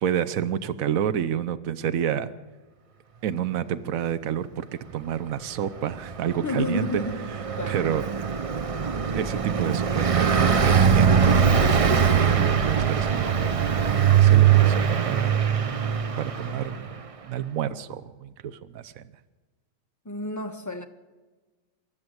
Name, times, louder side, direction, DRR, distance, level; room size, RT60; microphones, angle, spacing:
voice 1, 0.0-2.3 3.2-4.7 4.9-7.0 7.7-8.3 9.1-15.3 15.8-16.9 17.2-19.0, right 9 dB, 80° right, 1.2 m, -29 dB
Car passing by, 5.9-16.9, right 7 dB, 35° right, 0.6 m, -21 dB
voice 2, 6.4-7.2 7.6-7.8 20.0-20.8, left 2 dB, 15° left, 1.4 m, -30 dB
27.0 x 12.0 x 8.0 m
omnidirectional pair, 1.4 m